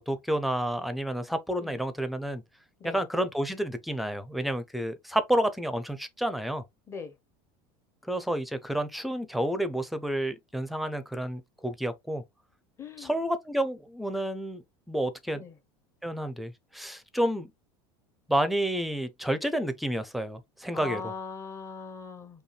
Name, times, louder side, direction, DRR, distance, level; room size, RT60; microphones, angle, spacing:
voice 1, 0.0-2.4 2.8-6.6 8.1-12.2 13.0-14.6 14.9-15.4 16.0-17.5 18.3-21.1, right 1 dB, ahead, 0.5 m, -30 dB
voice 2, 12.8-13.1 15.3-15.5 20.7-22.4, left 5 dB, 25° left, 0.9 m, -40 dB
5.2 x 2.3 x 3.2 m
supercardioid pair, 140°, 11 cm